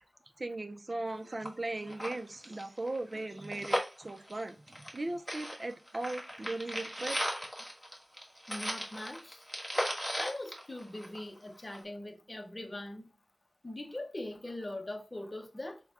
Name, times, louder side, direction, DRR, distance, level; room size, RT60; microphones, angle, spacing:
voice 1, 0.4-7.2, right 2 dB, 50° right, 0.6 m, -38 dB
sound 1, 1.1-1.2 1.4-1.5 1.8-5.0 5.3-11.4 11.7-11.8, equal, ahead, 1.4 m, -37 dB
voice 2, 8.5-9.4 10.2-13.1 13.6-15.8, left 1 dB, 35° left, 0.8 m, -41 dB
5.8 x 2.2 x 3.5 m
wide cardioid pair, 65°, 0 cm